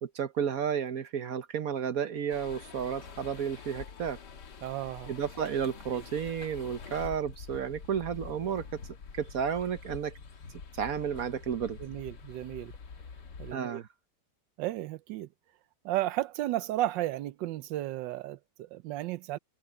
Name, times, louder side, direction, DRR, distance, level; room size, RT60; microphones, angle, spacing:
voice 1, 0.0-4.2 5.1-8.7 9.1-10.1 10.7-11.8 13.5-13.9, right 8 dB, 60° right, 1.2 m, -32 dB
sound 1, 2.3-13.6, left 5 dB, 70° left, 2.2 m, -46 dB
voice 2, 4.6-5.1 6.0-6.1 11.8-12.7 13.4-13.8 14.6-15.3 15.8-19.4, right 14 dB, 90° right, 1.3 m, -34 dB
omnidirectional pair, 1.9 m